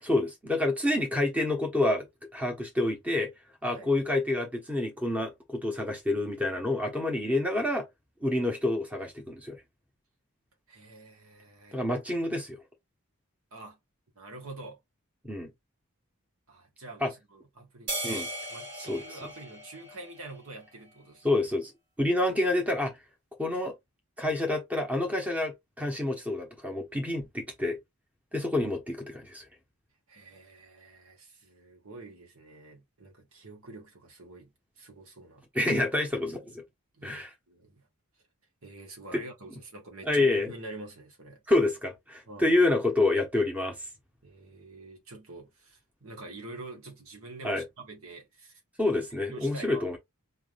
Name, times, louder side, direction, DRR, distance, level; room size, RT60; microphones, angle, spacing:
voice 1, 0.0-2.1 2.3-3.3 3.6-7.9 8.2-9.6 11.7-12.6 15.2-15.5 17.0-17.1 18.0-18.3 18.8-19.2 21.2-21.7 22.0-23.0 23.4-23.7 24.2-27.8 28.3-29.5 35.5-36.6 37.0-37.3 39.1-39.2 40.0-40.5 41.5-43.9 47.4-47.6 48.8-50.0, left 2 dB, 5° right, 1.1 m, -28 dB
voice 2, 10.7-11.8 13.5-13.8 14.1-14.8 16.5-18.2 18.5-21.3 30.1-35.5 36.9-37.2 37.5-37.9 38.6-41.4 42.3-42.5 44.2-48.6 49.3-50.0, right 2 dB, 70° right, 1.6 m, -46 dB
sound 1, 17.9-20.5, right 1 dB, 50° right, 2.4 m, -37 dB
4.2 x 3.6 x 2.5 m
head